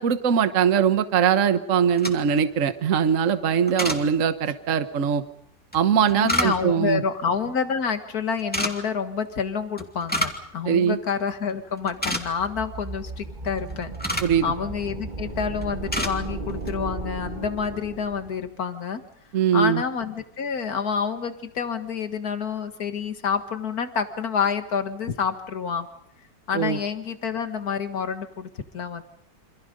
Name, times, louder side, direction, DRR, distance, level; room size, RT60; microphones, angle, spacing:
voice 1, 0.0-5.2 5.7-7.0 10.6-11.0 14.2-14.4 19.3-19.8 26.5-26.8, right 7 dB, 50° right, 10 dB, 1.4 m, -21 dB
sound 1, 1.8-2.4 3.7-4.0 5.7-6.9 8.4-8.7 9.8-10.5 10.7-10.8 11.4-11.5 11.8-12.6 13.5-14.4 15.1-15.4 15.6-16.2 16.5-16.7, equal, 5° left, 2.5 m, -28 dB
voice 2, 6.1-19.0 19.5-25.9 26.5-29.0, left 6 dB, 60° left, 9 dB, 2.1 m, -28 dB
sound 2, 12.0-18.5, right 3 dB, 30° right, 1.8 m, -35 dB
28.0 x 26.0 x 5.3 m, 0.72 s
omnidirectional pair, 1.9 m